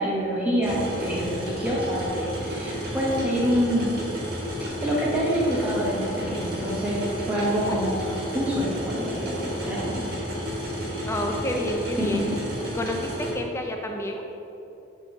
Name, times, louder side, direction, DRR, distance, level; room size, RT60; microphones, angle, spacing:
voice 1, 0.0-4.0 4.6-10.0 12.0-12.4, equal, 10° right, -6 dB, 1.1 m, -26 dB
sound 1, 0.6-13.3, equal, 50° right, 1.3 m, -31 dB
voice 2, 7.0-7.8 11.0-12.3 12.7-14.3, equal, 15° left, 2 dB, 0.4 m, -30 dB
7.6 x 3.7 x 3.8 m, 3.0 s
head